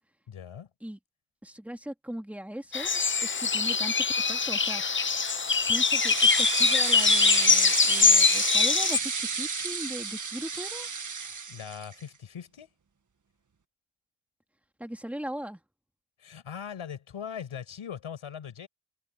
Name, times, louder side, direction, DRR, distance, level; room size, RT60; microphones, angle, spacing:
voice 1, 0.3-0.7 11.2-12.7 16.2-18.7, left 8 dB, 90° left, 5.7 m, -40 dB
voice 2, 1.4-3.0 3.4-4.8 5.7-10.9 14.8-15.6, equal, 5° right, 2.2 m, -39 dB
sound 1, 2.7-9.0, left 5 dB, 25° left, 0.7 m, -23 dB
sound 2, 5.0-12.0, right 5 dB, 40° right, 1.8 m, -32 dB
wide cardioid pair, 95°, 48 cm